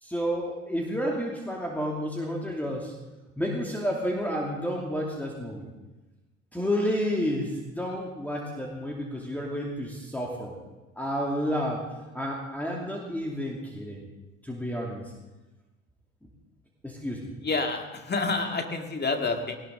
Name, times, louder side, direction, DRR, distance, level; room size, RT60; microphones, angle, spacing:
voice 1, 0.0-2.9 3.4-5.7 6.5-10.6 11.0-11.8 12.1-14.1 14.4-15.0 16.8-17.4, equal, 5° left, -2 dB, 2.6 m, -30 dB
voice 2, 17.4-19.6, left 3 dB, 25° left, 4 dB, 2.3 m, -28 dB
18.5 x 18.5 x 3.9 m, 1.1 s
figure-of-eight pair, 55°, 39 cm